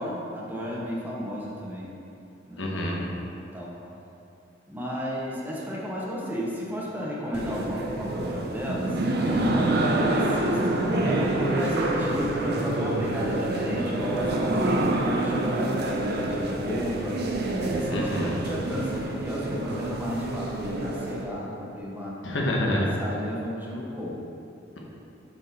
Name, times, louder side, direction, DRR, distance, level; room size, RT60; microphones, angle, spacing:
voice 1, 0.0-1.9 2.5-2.6 3.2-3.7 4.7-17.2 17.7-18.1 18.4-22.2 23.0-24.2, equal, 10° right, -5 dB, 1.1 m, -33 dB
voice 2, 2.6-3.0 17.9-18.4 22.2-22.9, left 1 dB, 75° left, -2 dB, 1.2 m, -27 dB
sound 1, 7.3-21.2, right 2 dB, 55° right, 0.7 m, -27 dB
6.8 x 5.9 x 4.2 m, 2.7 s
head